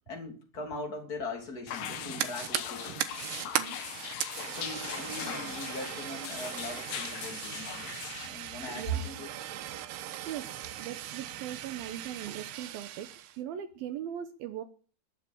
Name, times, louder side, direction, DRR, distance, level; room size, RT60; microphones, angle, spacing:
voice 1, 0.1-3.0 4.5-9.3, equal, 25° left, 3 dB, 3.1 m, -39 dB
sound 1, 1.7-8.3, left 9 dB, 80° left, 3.6 m, -40 dB
Fire, 1.8-13.4, right 12 dB, 90° right, 3.1 m, -38 dB
voice 2, 3.4-4.0 8.7-9.1 10.3-10.5 10.8-13.1 13.4-14.6, right 10 dB, 70° right, 10 dB, 2.7 m, -40 dB
20.0 x 7.8 x 8.8 m, 0.41 s
omnidirectional pair, 4.6 m